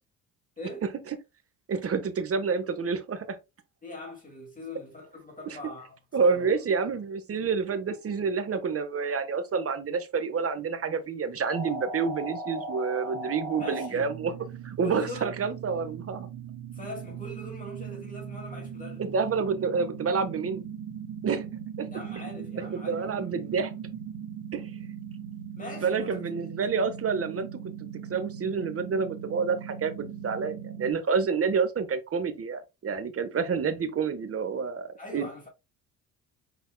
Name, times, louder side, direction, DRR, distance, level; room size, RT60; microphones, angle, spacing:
voice 1, 1.7-3.4 5.5-5.6 6.1-14.3 14.6-16.3 19.0-20.6 21.2-21.4 21.8-21.9 22.9-23.7 24.5-24.7 25.8-35.3, right 5 dB, 40° right, 1.2 m, -28 dB
voice 2, 3.8-6.5 13.6-14.1 14.8-15.3 16.7-19.1 21.9-23.2 25.6-26.2 35.0-35.5, left 1 dB, 20° left, 2.3 m, -41 dB
sound 1, 11.5-30.9, right 6 dB, 60° right, 1.7 m, -39 dB
5.5 x 4.0 x 2.2 m
supercardioid pair, 65°, 37 cm